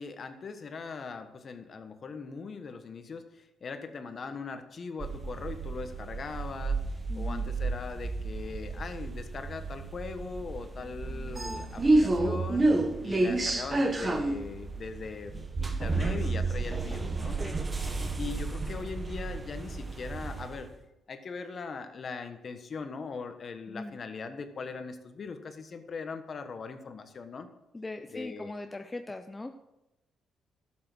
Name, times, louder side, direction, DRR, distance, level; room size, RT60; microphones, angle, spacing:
voice 1, 0.0-6.8 7.1-12.7 13.0-17.4 18.2-20.7 21.1-27.5 28.1-28.5, left 5 dB, 45° left, 8 dB, 1.4 m, -40 dB
sound 1, 5.0-20.7, right 2 dB, 25° right, 1.3 m, -31 dB
voice 2, 7.1-7.5 17.4-17.6 23.7-24.0 27.7-29.6, left 2 dB, 15° left, 7 dB, 0.6 m, -40 dB
12.0 x 7.7 x 6.2 m, 0.95 s
cardioid pair, 90°, 0 cm